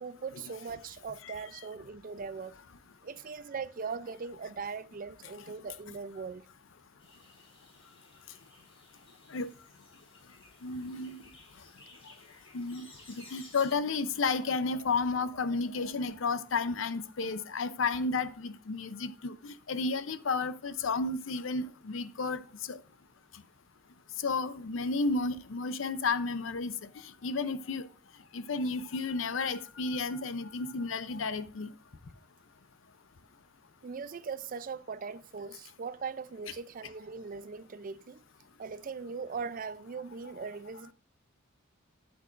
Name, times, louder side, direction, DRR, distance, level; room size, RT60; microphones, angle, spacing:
voice 1, 0.0-2.5 3.0-6.5 33.8-38.2 38.6-40.9, right 5 dB, 45° right, 0.4 m, -40 dB
sound 1, 7.0-13.7, left 2 dB, 30° left, 3.0 m, -57 dB
voice 2, 10.6-11.2 12.5-22.4 22.7-22.8 24.2-26.7 27.2-27.9 28.3-31.7 40.4-40.5, left 4 dB, 70° left, 0.6 m, -32 dB
12.0 x 8.7 x 2.5 m
head